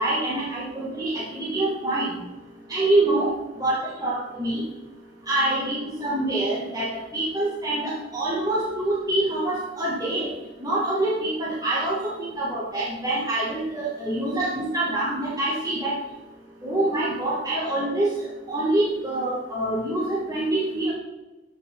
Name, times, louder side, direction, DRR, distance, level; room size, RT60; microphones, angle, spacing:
voice 1, 0.0-2.1 2.7-3.3 3.6-4.6 5.3-10.3 10.6-16.0 16.6-18.1 18.5-20.9, right 2 dB, 20° right, -8 dB, 2.4 m, -25 dB
14.5 x 5.9 x 4.0 m, 1.1 s
head